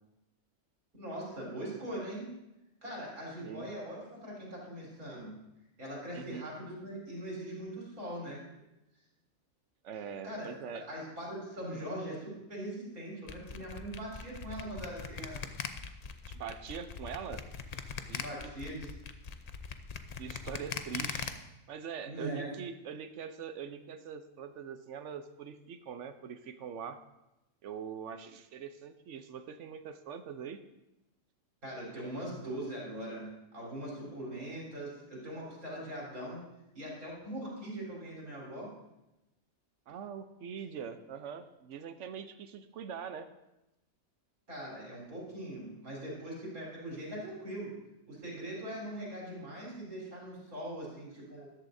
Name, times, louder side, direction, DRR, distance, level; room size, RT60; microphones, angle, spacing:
voice 1, 1.0-2.3 2.8-5.4 5.8-8.5 10.2-10.5 10.9-15.4 18.2-18.9 22.0-22.5 31.6-36.4 36.7-38.7 44.5-47.8 48.1-51.5, right 1 dB, 85° right, -4 dB, 4.4 m, -41 dB
voice 2, 6.1-6.5 9.8-10.9 16.3-17.5 18.1-18.5 20.2-21.3 21.7-27.0 27.6-30.6 39.9-43.3, right 7 dB, 65° right, 10 dB, 1.0 m, -43 dB
sound 1, 13.3-21.3, left 6 dB, 55° left, 0.4 m, -40 dB
13.5 x 11.5 x 2.7 m, 0.93 s
omnidirectional pair, 1.5 m